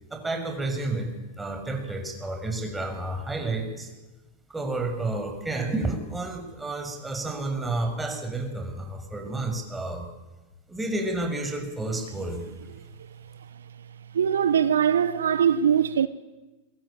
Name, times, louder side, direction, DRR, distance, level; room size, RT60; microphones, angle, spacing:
voice 1, 0.1-3.9 4.5-10.1 10.7-12.4, right 2 dB, 10° right, 6.8 m, -30 dB
voice 2, 14.1-16.1, right 8 dB, 75° right, 1.2 m, -21 dB
27.0 x 23.5 x 9.1 m
figure-of-eight pair, 90°, 0 cm